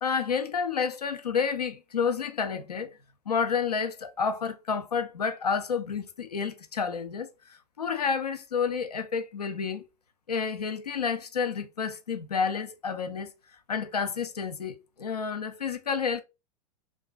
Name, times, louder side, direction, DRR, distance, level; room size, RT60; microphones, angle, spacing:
voice 1, 0.0-3.0 3.3-9.9 10.3-13.3 13.7-16.2, left 6 dB, 80° left, 0.6 m, -30 dB
2.9 x 2.3 x 2.2 m
figure-of-eight pair, 95°, 20 cm